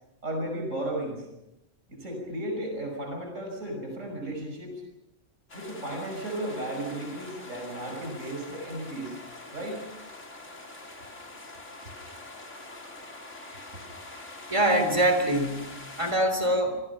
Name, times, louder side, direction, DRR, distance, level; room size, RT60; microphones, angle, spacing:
voice 1, 0.2-1.2 1.9-4.8 5.5-9.2 9.5-9.8 13.7-13.8, right 1 dB, 80° right, 2 dB, 6.4 m, -34 dB
sound 1, 5.5-16.1, left 2 dB, 75° left, 3.9 m, -44 dB
voice 2, 14.5-16.8, right 1 dB, 25° right, 7 dB, 3.7 m, -24 dB
27.5 x 25.5 x 5.7 m, 0.91 s
omnidirectional pair, 1.3 m